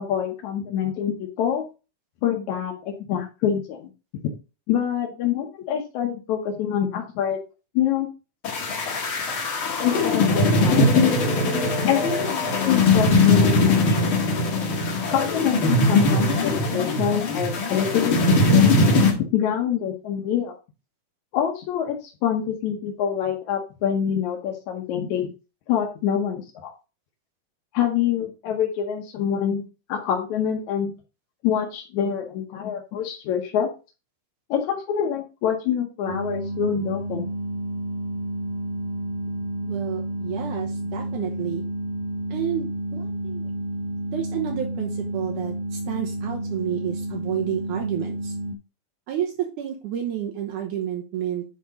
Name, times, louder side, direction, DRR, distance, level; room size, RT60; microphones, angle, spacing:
voice 1, 0.0-1.6 2.2-3.9 4.7-7.4 7.8-8.1 9.8-11.1 11.8-14.1 15.1-18.7 19.3-20.5 21.3-25.3 25.7-26.7 27.7-30.9 31.4-33.7 34.5-37.3, left 9 dB, 75° left, 0 dB, 2.3 m, -26 dB
sound 1, 8.4-19.1, left 2 dB, 45° left, 2.3 m, -20 dB
sound 2, 36.1-48.5, right 1 dB, 65° right, 2.2 m, -30 dB
voice 2, 39.6-41.6 42.3-43.5 44.1-48.3 49.1-51.4, right 10 dB, 80° right, 1 dB, 2.6 m, -30 dB
10.0 x 3.8 x 4.1 m, 0.31 s
omnidirectional pair, 3.5 m